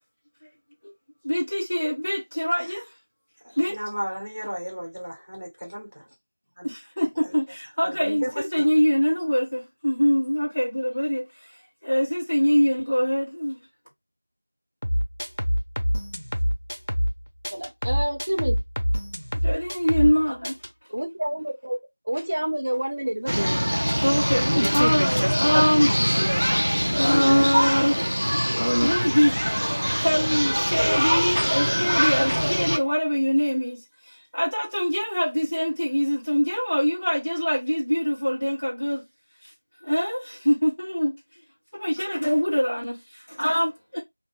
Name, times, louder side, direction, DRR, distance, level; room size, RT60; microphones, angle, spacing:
voice 1, 1.2-2.9 3.5-3.8 6.6-11.6 11.8-13.6 19.3-20.6 24.0-26.0 26.9-33.8 34.1-39.0 39.4-39.5 39.8-41.2 41.7-44.0, equal, 30° left, 1.0 m, -24 dB
voice 2, 3.7-5.9 6.6-6.7 7.2-7.3 7.8-8.3 8.6-8.7, equal, 35° right, 1.3 m, -33 dB
sound 1, 14.8-17.2 17.4-20.2 20.4-20.7, equal, 90° left, 0.8 m, -25 dB
voice 3, 17.5-18.6 20.9-21.8 22.1-23.5, right 1 dB, 15° right, 0.4 m, -28 dB
sound 2, 23.3-32.8, equal, 90° right, 0.4 m, -23 dB
2.6 x 2.4 x 3.5 m
figure-of-eight pair, 180°, 0 cm